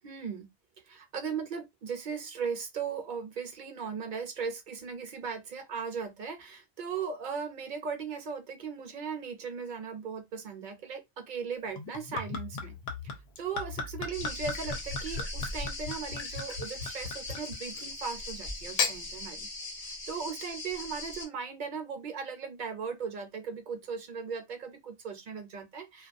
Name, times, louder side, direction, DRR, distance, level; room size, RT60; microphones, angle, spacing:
voice 1, 0.0-0.5 0.9-12.8 13.0-19.5 20.1-26.1, right 6 dB, 55° right, 0.7 m, -38 dB
Gurgling / Chink clink / Liquid, 11.8-17.9 18.6-19.0, left 4 dB, 80° left, 0.9 m, -36 dB
sound 1, 14.1-21.3, left 2 dB, 35° left, 0.6 m, -40 dB
2.3 x 2.2 x 2.5 m
omnidirectional pair, 1.1 m